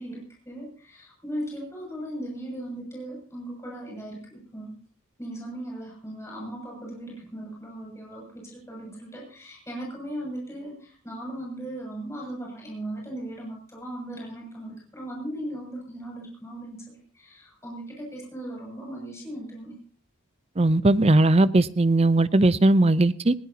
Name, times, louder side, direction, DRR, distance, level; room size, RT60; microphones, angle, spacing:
voice 1, 0.0-4.7 5.2-19.7, right 1 dB, 15° left, -2 dB, 7.1 m, -38 dB
voice 2, 20.6-23.3, right 2 dB, 30° right, 15 dB, 0.6 m, -19 dB
20.0 x 19.0 x 2.9 m, 0.40 s
head